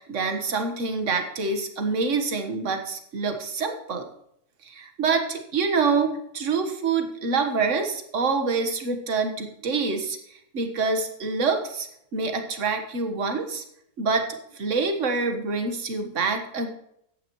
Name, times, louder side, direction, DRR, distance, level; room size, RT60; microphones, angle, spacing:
voice 1, 0.0-4.0 4.6-10.2 10.5-11.9 12.1-13.6 14.0-14.3 14.5-16.7, right 4 dB, 50° right, 6 dB, 1.7 m, -26 dB
13.5 x 9.7 x 3.1 m, 0.73 s
omnidirectional pair, 1.7 m